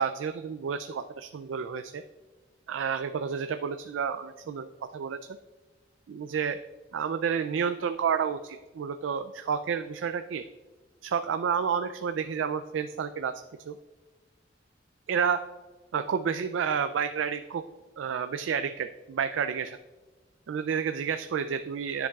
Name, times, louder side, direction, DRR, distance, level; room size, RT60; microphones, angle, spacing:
voice 1, 0.0-2.0 2.7-5.2 6.1-6.6 6.9-10.5 11.0-13.8 15.1-15.4 15.9-17.6 18.0-19.8 20.5-22.1, right 7 dB, 85° right, 9 dB, 0.3 m, -30 dB
10.5 x 7.1 x 2.3 m, 1.3 s
head